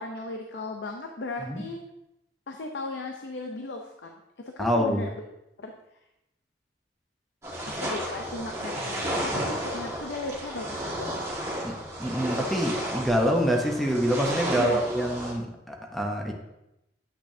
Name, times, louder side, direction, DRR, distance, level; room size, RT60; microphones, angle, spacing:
voice 1, 0.0-1.8 2.5-5.1 5.6-5.7 7.8-11.1 14.6-14.8, left 2 dB, 80° left, 3 dB, 0.6 m, -36 dB
voice 2, 4.6-5.1 11.6-16.3, equal, ahead, 1 dB, 0.8 m, -26 dB
sound 1, 7.4-15.3, right 1 dB, 15° right, 1.7 m, -33 dB
8.7 x 5.9 x 2.7 m, 0.88 s
head